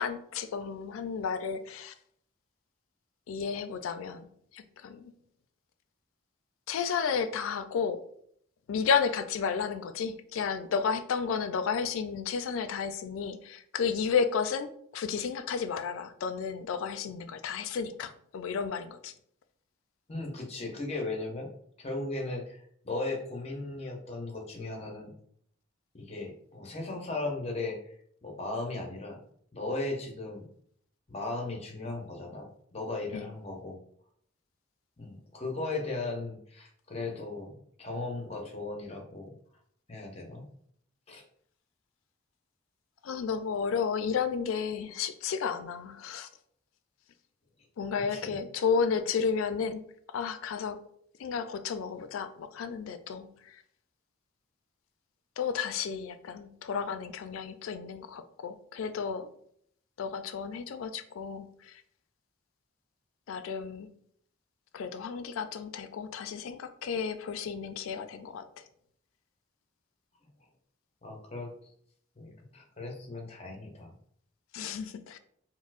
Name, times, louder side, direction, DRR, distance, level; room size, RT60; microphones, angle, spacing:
voice 1, 0.0-1.9 3.3-4.3 4.5-5.1 6.7-8.0 8.7-19.1 33.1-33.3 43.0-46.3 47.8-49.8 50.1-50.8 51.2-53.6 55.4-59.3 60.0-61.8 63.3-63.9 64.7-68.4 74.5-75.2, left 6 dB, 85° left, 10 dB, 0.3 m, -32 dB
voice 2, 20.1-21.5 21.8-22.6 22.8-25.1 25.9-28.0 28.2-29.2 29.5-30.5 31.1-33.8 35.0-37.5 37.8-39.4 39.9-40.4 41.1-41.2 48.1-48.4 71.0-71.5 72.2-73.9, left 2 dB, 30° left, 1 dB, 0.6 m, -37 dB
4.2 x 2.0 x 2.4 m, 0.65 s
head